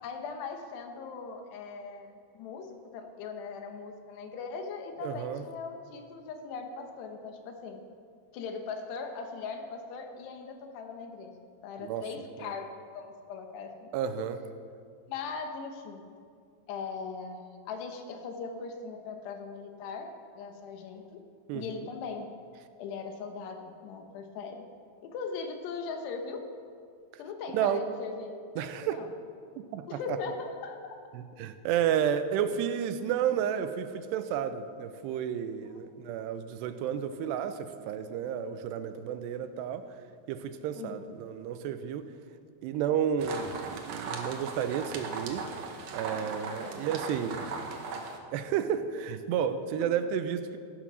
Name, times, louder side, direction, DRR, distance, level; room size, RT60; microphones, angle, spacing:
voice 1, 0.0-7.8 8.3-13.9 15.1-16.1 16.7-21.2 21.5-22.3 22.8-24.7 25.0-26.5 27.2-29.1 29.9-31.0 37.2-37.3 40.8-41.1 46.6-46.9 49.8-49.9, left 5 dB, 85° left, 5 dB, 3.3 m, -40 dB
voice 2, 5.0-5.4 11.8-12.1 12.4-12.5 13.9-14.4 21.5-21.9 27.5-27.8 28.6-29.0 29.7-30.2 31.1-37.5 37.9-39.9 40.3-42.1 42.6-45.5 45.9-47.4 48.3-50.6, right 8 dB, 90° right, 10 dB, 2.8 m, -31 dB
sound 1, 43.2-48.2, right 4 dB, 70° right, 1.7 m, -38 dB
16.0 x 9.0 x 6.2 m, 2.2 s
omnidirectional pair, 4.7 m